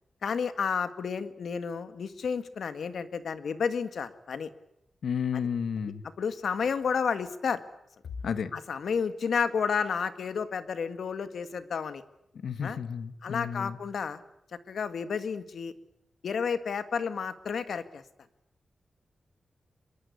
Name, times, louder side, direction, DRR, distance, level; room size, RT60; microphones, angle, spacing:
voice 1, 0.2-4.5 5.3-5.5 6.2-7.6 8.5-12.0 12.6-12.8 13.2-14.2 14.7-15.7 16.2-18.0, left 6 dB, 70° left, 12 dB, 1.9 m, -31 dB
voice 2, 5.0-6.0 8.2-8.6 12.4-13.8, left 7 dB, 90° left, 13 dB, 1.6 m, -32 dB
24.5 x 23.0 x 8.4 m, 0.79 s
wide cardioid pair, 170°, 0 cm